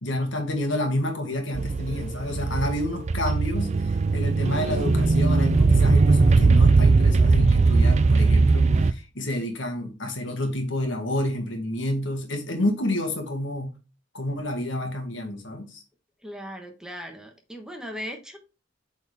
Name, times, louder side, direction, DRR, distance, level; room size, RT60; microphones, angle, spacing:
voice 1, 0.0-13.7 14.1-15.8, left 1 dB, 75° left, 1.8 m, -29 dB
sound 1, 1.5-8.9, right 3 dB, 35° right, 0.4 m, -19 dB
voice 2, 16.2-18.4, equal, 5° right, 1.1 m, -38 dB
8.1 x 4.2 x 3.5 m
head